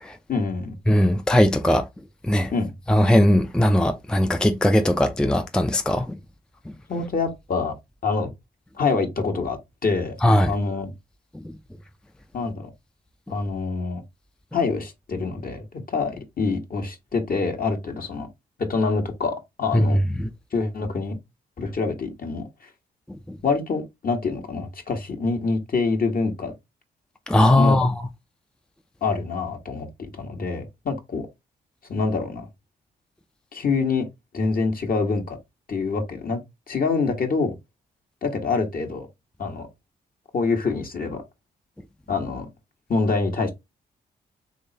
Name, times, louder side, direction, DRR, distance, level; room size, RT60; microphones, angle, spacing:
voice 1, 0.3-0.7 2.5-2.7 6.9-7.7 8.0-8.3 8.7-9.6 9.8-10.2 10.4-10.9 12.3-12.7 13.3-14.0 14.5-18.3 18.6-20.0 20.5-21.2 21.6-22.5 23.4-26.5 27.6-27.8 29.0-29.9 30.1-31.3 31.9-32.5 33.5-34.1 34.3-35.4 35.7-36.4 36.7-37.5 38.2-39.1 39.4-39.7 40.3-41.2 42.1-42.5 42.9-43.5, left 4 dB, 50° left, 1.5 m, -25 dB
voice 2, 0.9-1.9 2.3-2.5 2.9-6.1 10.2-10.5 19.7-19.8 20.2-20.3 23.3-23.4 27.3-27.9, left 1 dB, 5° left, 0.5 m, -19 dB
3.5 x 3.2 x 2.9 m
supercardioid pair, 50°, 19 cm